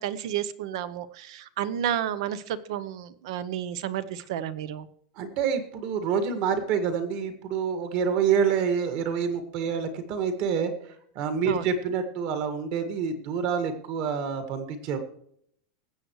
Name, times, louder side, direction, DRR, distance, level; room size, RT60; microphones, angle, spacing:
voice 1, 0.0-4.9 11.4-11.7, right 10 dB, 55° right, 15 dB, 0.8 m, -31 dB
voice 2, 5.2-10.7 11.2-15.0, right 6 dB, 40° right, 8 dB, 1.8 m, -27 dB
20.5 x 8.0 x 3.2 m, 0.69 s
supercardioid pair, 180°, 3 cm